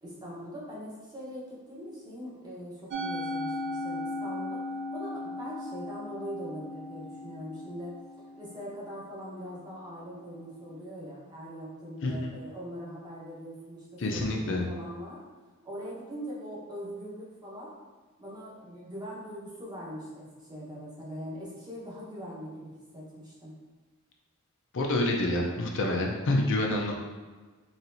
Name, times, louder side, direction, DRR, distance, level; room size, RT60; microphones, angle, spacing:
voice 1, 0.0-4.6 4.9-15.2 15.6-17.7 18.2-23.5, equal, 20° right, -6 dB, 1.0 m, -41 dB
Musical instrument, 2.9-9.3, left 1 dB, 55° right, 0.5 m, -37 dB
voice 2, 12.0-12.4 14.0-14.7 24.7-26.9, left 1 dB, 60° left, 0 dB, 0.5 m, -27 dB
4.2 x 3.2 x 2.6 m, 1.4 s
head